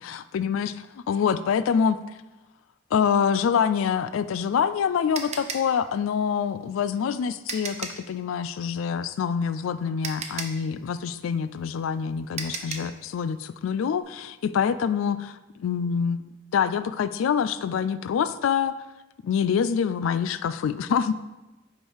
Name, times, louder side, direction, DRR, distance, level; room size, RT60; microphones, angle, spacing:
voice 1, 0.0-2.0 2.9-18.7 19.2-21.2, left 7 dB, 80° left, 14 dB, 0.3 m, -26 dB
sound 1, 4.2-8.1 9.5-9.6 10.0-13.0, right 5 dB, 35° right, 0.5 m, -36 dB
5.0 x 4.4 x 4.6 m, 1.0 s
head